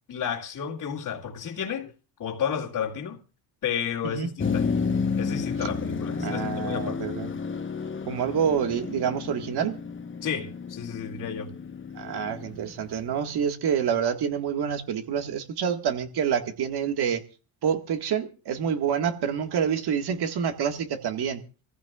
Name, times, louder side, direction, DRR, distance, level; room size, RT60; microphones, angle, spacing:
voice 1, 0.1-1.9 2.2-3.2 3.6-4.7 5.2-7.1 10.2-11.5, left 8 dB, 50° left, 2.2 m, -32 dB
Motor vehicle (road), 4.4-13.4, left 5 dB, 25° left, 1.1 m, -31 dB
voice 2, 6.2-7.3 8.1-9.8 12.0-17.2 17.6-21.4, right 8 dB, 60° right, 1.8 m, -27 dB
26.5 x 15.0 x 2.4 m
cardioid pair, 95°, 44 cm